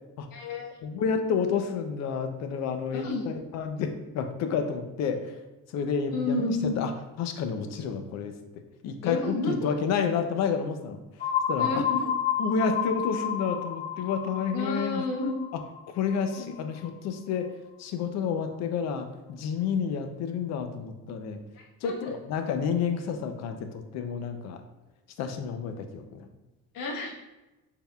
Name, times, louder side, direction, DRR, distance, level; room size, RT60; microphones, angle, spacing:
voice 1, 0.3-0.8 2.9-3.2 6.1-6.8 9.0-9.7 11.6-12.1 14.5-15.4 16.4-16.5 21.5-21.9 26.7-27.1, left 2 dB, 80° left, -1 dB, 1.1 m, -31 dB
voice 2, 0.8-5.4 5.7-6.9 7.2-8.4 8.8-11.0 11.5-11.8 12.4-15.0 15.5-15.6 15.9-21.4 21.8-24.6 25.2-26.3, left 6 dB, 55° left, 7 dB, 0.5 m, -30 dB
sound 1, 11.2-16.9, left 8 dB, 30° left, 1.4 m, -31 dB
6.5 x 3.5 x 2.3 m, 1.1 s
cardioid pair, 180°, 32 cm